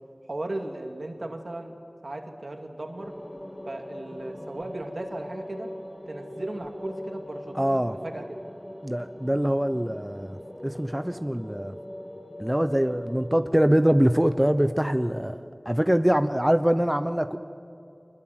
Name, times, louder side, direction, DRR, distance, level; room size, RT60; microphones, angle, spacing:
voice 1, 0.3-1.8 2.0-3.1 3.6-5.7 6.1-7.6 7.9-8.3, right 2 dB, 70° right, 4 dB, 2.5 m, -36 dB
sound 1, 3.0-15.2, left 1 dB, 15° left, 1.5 m, -41 dB
voice 2, 7.5-7.9 8.8-10.4 10.6-11.7 12.4-15.4 15.7-17.4, equal, 10° right, 9 dB, 0.8 m, -23 dB
25.0 x 21.0 x 7.9 m, 2.6 s
wide cardioid pair, 50°, 0 cm